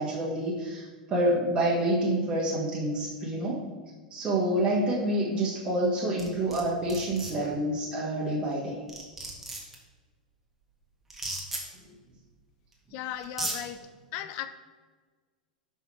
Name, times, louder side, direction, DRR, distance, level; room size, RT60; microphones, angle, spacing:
voice 1, 0.0-3.6 4.1-8.8, right 1 dB, 20° right, -6 dB, 1.5 m, -27 dB
sound 1, 6.2-6.6 6.9-7.3 8.5-8.6 8.9-9.7 11.1-11.6 12.7-12.8 13.2-13.6, right 2 dB, 5° right, 1.6 m, -34 dB
voice 2, 12.9-13.8 14.1-14.5, left 11 dB, 45° left, 10 dB, 0.5 m, -36 dB
5.8 x 5.5 x 4.7 m, 1.4 s
figure-of-eight pair, 95°, 4 cm